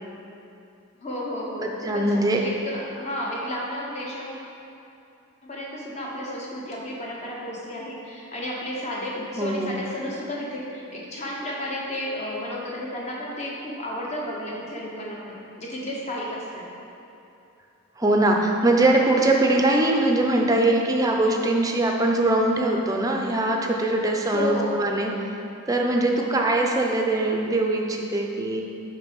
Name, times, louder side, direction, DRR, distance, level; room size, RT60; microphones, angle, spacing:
voice 1, 1.0-4.4 5.4-16.7 24.3-24.8, left 1 dB, 30° left, -3 dB, 1.2 m, -32 dB
voice 2, 1.6-2.4 9.4-9.8 18.0-25.1 25.7-28.6, right 2 dB, 15° right, 0 dB, 0.6 m, -22 dB
7.0 x 5.7 x 5.4 m, 2.8 s
head